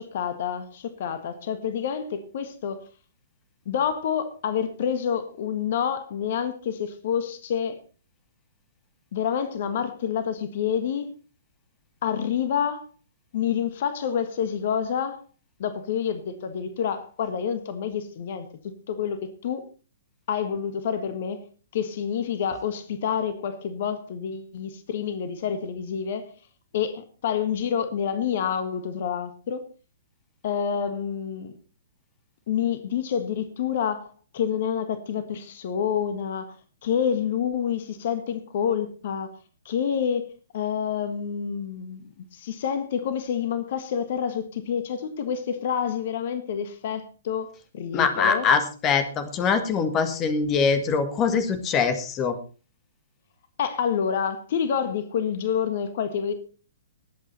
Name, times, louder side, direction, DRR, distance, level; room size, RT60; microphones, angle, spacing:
voice 1, 0.0-2.8 3.6-7.8 9.1-11.1 12.0-12.9 13.3-15.2 15.6-18.5 18.9-19.7 20.3-21.4 21.7-26.3 26.7-29.6 30.4-31.5 32.5-36.5 36.8-39.3 39.6-42.0 42.3-48.5 53.6-56.3, left 8 dB, 50° left, 10 dB, 1.5 m, -28 dB
voice 2, 47.9-52.4, left 5 dB, 25° left, 10 dB, 1.7 m, -23 dB
19.5 x 8.5 x 4.1 m, 0.36 s
figure-of-eight pair, 115°, 0 cm